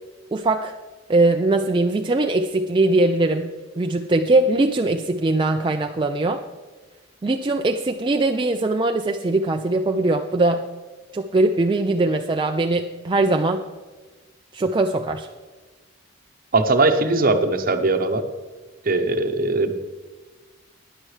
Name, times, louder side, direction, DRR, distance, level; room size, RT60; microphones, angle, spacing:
voice 1, 0.3-0.7 1.1-3.5 3.8-6.4 7.2-10.6 11.1-13.6 14.5-15.3, right 2 dB, 25° right, 4 dB, 0.4 m, -21 dB
voice 2, 16.5-18.2 18.8-19.7, right 3 dB, 50° right, 7 dB, 0.9 m, -20 dB
17.0 x 10.0 x 3.3 m, 1.3 s
head